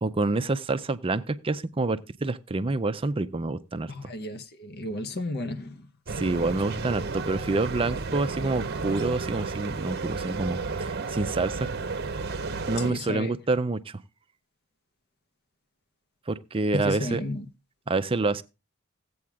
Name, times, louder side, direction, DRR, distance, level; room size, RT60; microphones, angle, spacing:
voice 1, 0.0-3.9 6.1-11.7 12.7-14.0 16.3-17.2 17.9-18.4, right 3 dB, 25° right, 0.5 m, -27 dB
voice 2, 3.9-5.9 12.8-13.3 16.7-17.5, left 2 dB, 45° left, 0.8 m, -33 dB
sound 1, 6.1-12.9, right 4 dB, 50° right, 0.8 m, -32 dB
15.5 x 8.5 x 2.3 m
head